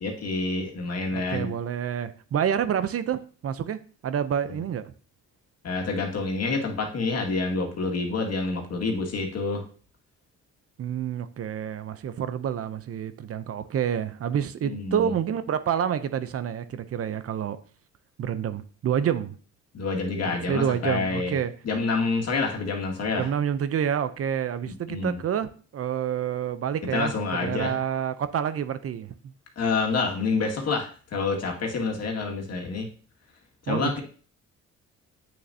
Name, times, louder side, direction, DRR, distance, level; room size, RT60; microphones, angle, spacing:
voice 1, 0.0-1.5 4.5-4.6 5.6-9.6 14.6-15.1 19.7-21.3 21.6-23.3 24.9-25.2 26.9-27.8 29.6-32.9 33.7-34.0, left 3 dB, 55° left, 2.0 m, -28 dB
voice 2, 1.1-4.9 10.8-17.6 18.2-19.4 20.2-21.5 23.2-29.1 33.7-34.0, right 8 dB, 50° right, 0.6 m, -28 dB
8.7 x 6.3 x 2.7 m
cardioid pair, 90°, 30 cm